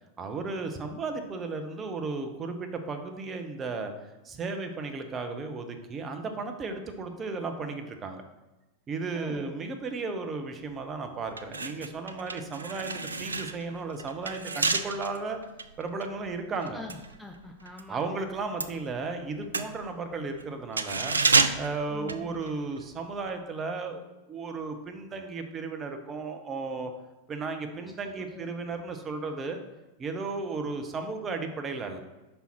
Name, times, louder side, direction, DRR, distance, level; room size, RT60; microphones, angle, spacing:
voice 1, 0.2-3.9 4.2-8.2 8.9-15.4 15.8-16.8 17.9-21.2 21.6-26.9 27.3-29.6 30.0-32.0, right 4 dB, 25° right, 5 dB, 0.8 m, -34 dB
voice 2, 9.1-9.5 16.7-18.2 21.9-22.5 27.8-28.8, left 2 dB, 5° left, 3 dB, 0.4 m, -45 dB
sound 1, 10.7-10.8 11.3-17.9 18.2-22.8 23.1-23.3, right 4 dB, 75° right, 0.3 m, -30 dB
5.5 x 4.4 x 4.4 m, 1.0 s
figure-of-eight pair, 90°, 0 cm